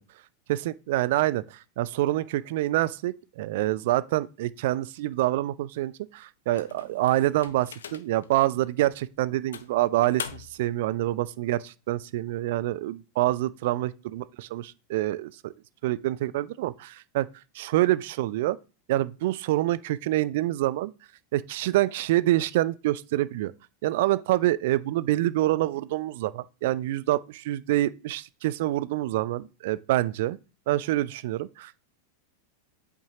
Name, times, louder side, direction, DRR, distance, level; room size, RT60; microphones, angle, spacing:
voice 1, 0.5-15.5 15.8-17.3 17.6-18.6 18.9-20.9 21.3-23.5 23.8-30.4 30.7-31.8, right 15 dB, 50° right, 0.3 m, -26 dB
sound 1, 6.5-8.3 8.8-8.9 9.5-10.7, left 7 dB, 65° left, 0.6 m, -41 dB
8.3 x 5.9 x 2.9 m
figure-of-eight pair, 90°, 0 cm